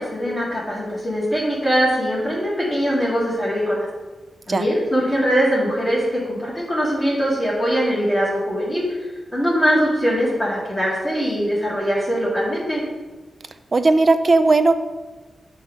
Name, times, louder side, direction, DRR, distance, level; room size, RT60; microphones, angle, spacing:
voice 1, 0.0-3.9 4.5-12.8, equal, 15° left, -8 dB, 2.1 m, -22 dB
voice 2, 13.7-14.8, right 3 dB, 40° right, 10 dB, 0.5 m, -16 dB
8.4 x 3.4 x 5.4 m, 1.2 s
wide cardioid pair, 95°, 0 cm